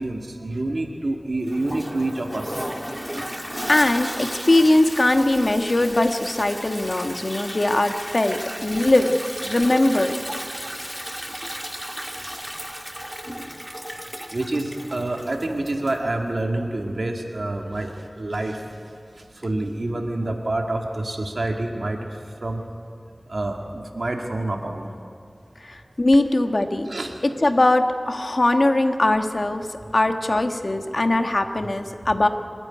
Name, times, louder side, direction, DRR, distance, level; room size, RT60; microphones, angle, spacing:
voice 1, 0.0-2.7 11.2-11.4 14.3-18.9 19.3-22.6 23.3-24.9 26.9-27.2 29.8-29.9 32.0-32.1, right 2 dB, 80° right, 2 dB, 2.0 m, -28 dB
Toilet flush, 1.5-16.1, equal, 5° right, 1.6 m, -34 dB
voice 2, 3.7-9.2 9.4-10.1 25.6-26.9 27.4-29.7 29.9-32.3, left 2 dB, 60° left, 6 dB, 1.4 m, -20 dB
29.0 x 10.0 x 9.5 m, 2.4 s
wide cardioid pair, 45°, 0 cm